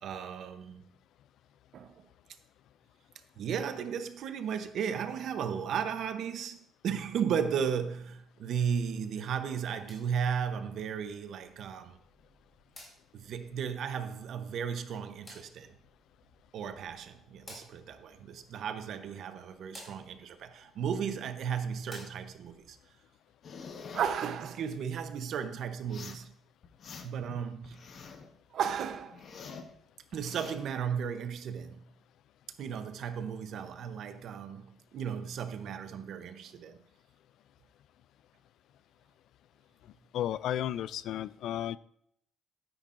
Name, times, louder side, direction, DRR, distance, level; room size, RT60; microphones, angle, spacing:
voice 1, 0.0-0.8 1.7-1.9 3.4-6.6 6.8-12.0 13.1-15.7 16.5-22.8 23.9-26.4 27.0-27.9 28.5-29.2 30.1-31.9 32.6-36.8, right 7 dB, 50° right, 0.8 m, -35 dB
sound 1, 9.5-22.6, left 1 dB, 20° left, 3.2 m, -57 dB
sound 2, 23.4-24.1 25.8-26.3 26.6-27.3 27.6-28.3 28.7-29.7 30.1-30.6, left 5 dB, 40° left, 0.9 m, -46 dB
voice 2, 40.1-41.8, left 11 dB, 60° left, 0.3 m, -33 dB
12.5 x 9.8 x 2.6 m
cardioid pair, 175°, 0 cm